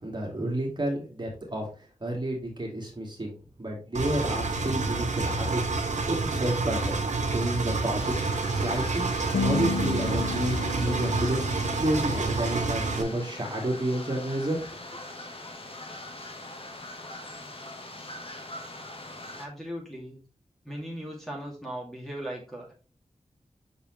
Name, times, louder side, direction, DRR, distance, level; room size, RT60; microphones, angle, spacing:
voice 1, 0.0-1.7 2.0-3.3 3.6-5.7 6.1-7.0 7.3-8.1 8.6-9.1 9.4-11.4 11.8-14.6, right 1 dB, 40° right, -1 dB, 2.4 m, -30 dB
Engine, 3.9-13.0, right 3 dB, 85° right, 1.1 m, -28 dB
sound 1, 8.0-19.5, left 1 dB, 50° left, 1.5 m, -42 dB
sound 2, 9.3-13.7, left 5 dB, 90° left, 0.7 m, -34 dB
voice 2, 19.3-20.2 20.6-22.7, equal, ahead, -4 dB, 2.4 m, -38 dB
6.1 x 5.3 x 3.2 m, 0.36 s
wide cardioid pair, 65°, 12 cm